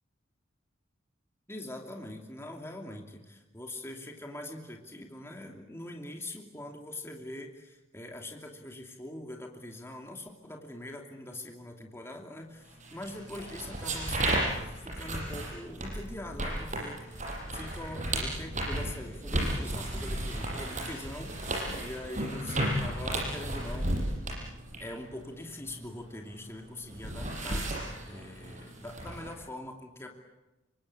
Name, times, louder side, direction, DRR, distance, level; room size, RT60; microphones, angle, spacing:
voice 1, 1.5-24.0 24.8-30.1, left 1 dB, 15° left, 2 dB, 2.8 m, -43 dB
sound 1, 12.8-26.3 26.6-29.3, right 1 dB, 40° right, 8.0 m, -34 dB
27.5 x 24.5 x 8.6 m, 1.0 s
head